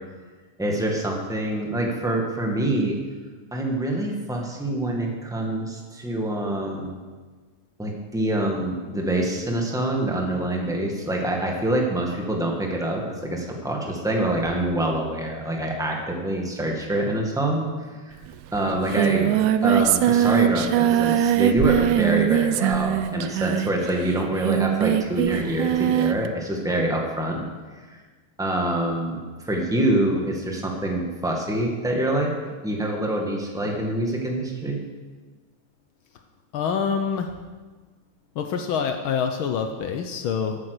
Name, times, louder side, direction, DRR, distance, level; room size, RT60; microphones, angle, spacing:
voice 1, 0.6-3.0 3.5-6.9 7.8-17.7 18.1-18.2 18.5-19.3 19.6-27.4 27.9-28.0 28.4-29.2 29.5-32.3 32.6-34.8, right 1 dB, ahead, 0 dB, 1.2 m, -25 dB
Singing, 18.2-18.3 18.5-26.3, right 10 dB, 90° right, 2.0 m, -22 dB
voice 2, 36.5-37.3 38.4-40.6, left 6 dB, 90° left, 5 dB, 1.1 m, -26 dB
15.0 x 8.6 x 6.7 m, 1.4 s
omnidirectional pair, 3.4 m